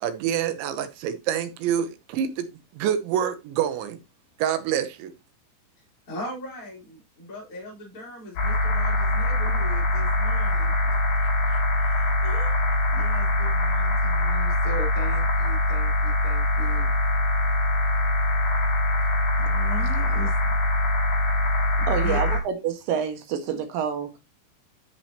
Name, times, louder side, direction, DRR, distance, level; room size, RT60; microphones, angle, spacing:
voice 1, 0.0-2.5 2.8-4.0 4.4-5.1, right 9 dB, 75° right, 3.1 m, -26 dB
voice 2, 6.1-11.0 11.4-12.6 12.9-16.9 19.4-20.3 21.8-22.2, equal, 20° left, 4.2 m, -39 dB
sound 1, 8.4-22.4, left 1 dB, 50° left, 5.3 m, -23 dB
voice 3, 21.9-24.2, right 8 dB, 60° right, 2.6 m, -28 dB
11.5 x 6.8 x 2.9 m
omnidirectional pair, 5.6 m